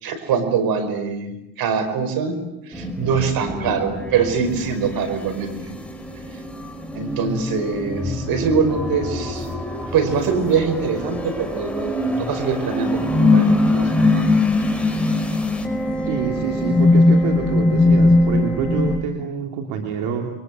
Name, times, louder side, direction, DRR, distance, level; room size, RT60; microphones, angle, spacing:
voice 1, 0.0-2.4 2.7-5.8 6.9-9.5 9.9-14.3, right 6 dB, 70° right, 10 dB, 5.2 m, -23 dB
sound 1, 2.7-19.0, left 2 dB, 5° left, 5.1 m, -21 dB
voice 2, 16.1-20.3, right 6 dB, 85° right, 3 dB, 3.0 m, -27 dB
30.0 x 23.0 x 7.6 m, 0.89 s
supercardioid pair, 85°, 37 cm